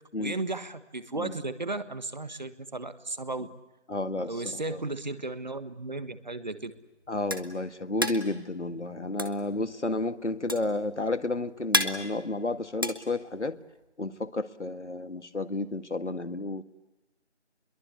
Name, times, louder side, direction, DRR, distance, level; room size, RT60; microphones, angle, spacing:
voice 1, 0.2-3.5 4.3-6.7, right 2 dB, 40° right, 13 dB, 1.5 m, -35 dB
voice 2, 3.9-4.6 7.1-13.6 14.0-16.6, left 2 dB, 85° left, 11 dB, 1.8 m, -31 dB
pop can hits, 6.7-13.8, equal, 20° right, 1.0 m, -32 dB
28.0 x 22.5 x 8.3 m, 1.1 s
figure-of-eight pair, 170°, 34 cm